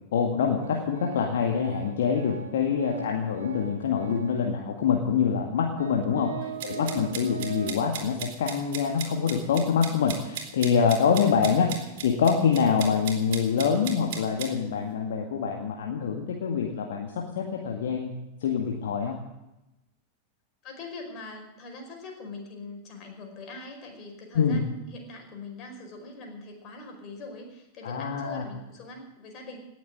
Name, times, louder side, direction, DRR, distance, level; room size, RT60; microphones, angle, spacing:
voice 1, 0.1-6.3 6.6-11.7 12.0-18.1 18.4-19.2 24.3-24.6 27.8-28.4, left 6 dB, 60° left, 2 dB, 1.9 m, -25 dB
Organ, 0.6-4.5 5.2-5.3 5.7-7.9, right 6 dB, 70° right, 1.9 m, -40 dB
voice 2, 6.3-6.9 7.5-7.9 11.4-11.9 20.6-29.6, left 2 dB, 35° left, 2 dB, 5.0 m, -43 dB
sound 1, 6.6-14.5, right 8 dB, 50° right, 3.1 m, -37 dB
18.5 x 7.3 x 10.0 m, 0.93 s
figure-of-eight pair, 90°, 0 cm